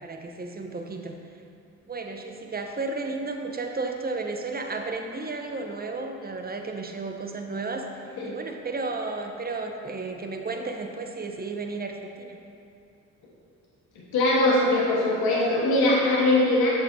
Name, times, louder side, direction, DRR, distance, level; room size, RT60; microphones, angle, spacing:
voice 1, 0.0-1.2 1.9-7.9 8.2-12.4, right 3 dB, 25° right, 4 dB, 0.8 m, -33 dB
voice 2, 14.1-16.7, left 2 dB, 70° left, -5 dB, 1.5 m, -21 dB
9.1 x 6.8 x 2.7 m, 2.6 s
hypercardioid pair, 45°, 39 cm